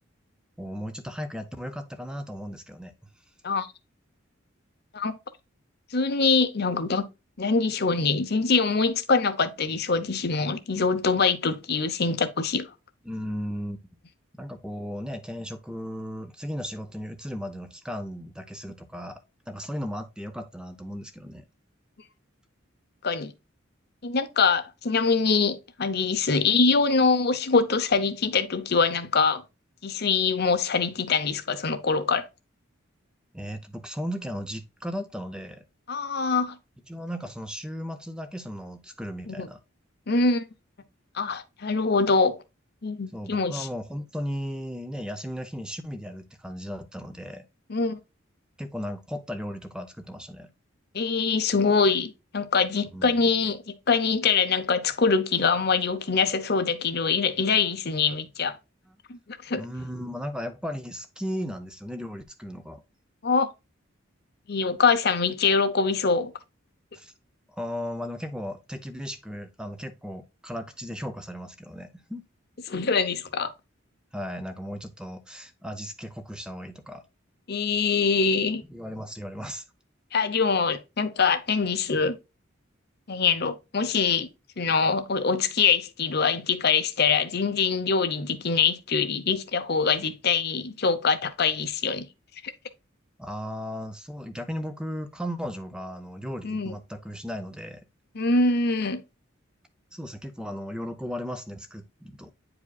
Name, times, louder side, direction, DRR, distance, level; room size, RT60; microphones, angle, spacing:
voice 1, 0.6-2.9 13.1-13.8 14.4-21.4 33.3-35.6 36.9-39.6 43.1-47.4 48.6-50.5 52.9-53.3 59.6-62.8 66.9-67.1 67.5-72.2 74.1-77.0 78.7-79.6 93.2-97.9 99.9-102.3, equal, 5° right, 0.6 m, -36 dB
voice 2, 5.9-7.1 7.4-12.7 23.0-23.3 24.0-29.4 29.8-32.3 35.9-36.6 39.3-39.5 40.1-40.5 41.1-42.4 42.8-43.7 47.7-48.0 50.9-58.6 59.1-59.6 63.2-63.5 64.5-66.3 72.7-73.5 77.5-78.6 80.1-82.2 83.1-84.3 84.6-92.1 96.4-96.7 98.1-99.0, left 5 dB, 50° left, 0.8 m, -24 dB
9.3 x 4.9 x 2.3 m
head